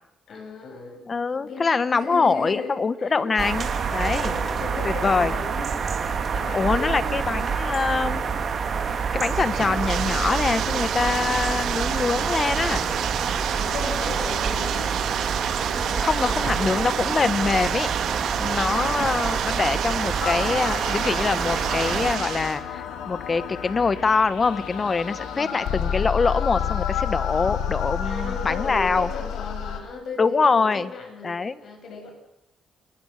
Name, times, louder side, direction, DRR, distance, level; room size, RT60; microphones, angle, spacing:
voice 1, 0.3-1.1 1.3-3.3 4.0-7.2 12.2-13.1 13.5-15.2 15.7-16.7 18.5-18.9 25.1-25.5 28.0-32.1, left 4 dB, 60° left, 4 dB, 7.9 m, -37 dB
voice 2, 1.1-4.3 4.8-5.3 6.5-8.2 9.1-12.9 16.0-17.9 18.4-29.1 30.2-30.9 31.2-31.5, left 4 dB, 35° left, 15 dB, 1.4 m, -24 dB
sound 1, 3.4-22.2, right 6 dB, 50° right, 3.2 m, -27 dB
Bathtub (filling or washing), 8.6-22.6, right 10 dB, 80° right, 1.9 m, -31 dB
sound 2, 20.2-29.8, left 8 dB, 85° left, 3.2 m, -30 dB
28.5 x 21.5 x 6.7 m, 0.82 s
cardioid pair, 90°, 0 cm